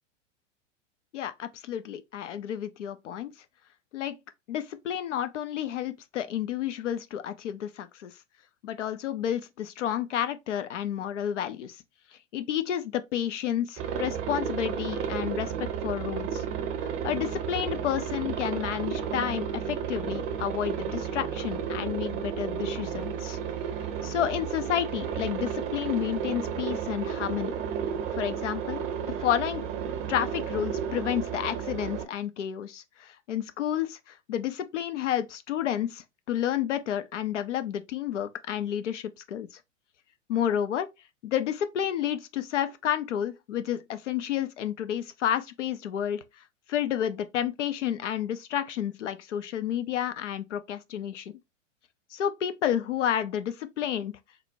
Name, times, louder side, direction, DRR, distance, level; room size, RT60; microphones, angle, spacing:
voice 1, 1.1-3.3 3.9-4.2 4.5-8.2 8.6-11.8 12.3-16.4 16.8-23.4 24.0-27.5 28.1-28.8 29.2-29.6 30.1-39.6 40.3-40.9 41.2-46.4 46.7-51.3 52.1-54.1, left 10 dB, 75° left, 0.6 m, -30 dB
Aircraft, 13.8-32.1, right 7 dB, 35° right, 0.7 m, -32 dB
4.1 x 2.2 x 2.6 m
figure-of-eight pair, 100°, 37 cm